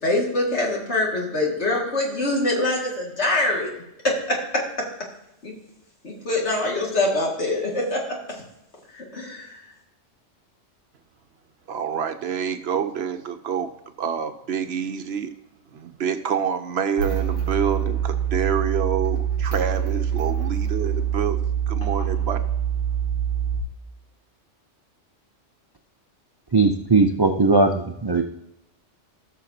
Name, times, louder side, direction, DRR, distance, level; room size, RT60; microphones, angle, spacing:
voice 1, 0.0-3.7 4.0-4.6 5.4-5.5 6.0-8.4 8.9-9.6, left 2 dB, 60° left, -2 dB, 2.4 m, -24 dB
voice 2, 11.7-13.7 14.0-15.3 15.7-22.4, right 7 dB, 65° right, 8 dB, 0.8 m, -27 dB
sound 1, 17.0-23.6, right 8 dB, 80° left, 2.5 m, -25 dB
voice 3, 26.5-28.2, right 3 dB, 35° right, 4 dB, 0.4 m, -19 dB
17.5 x 6.4 x 2.8 m, 0.85 s
omnidirectional pair, 1.3 m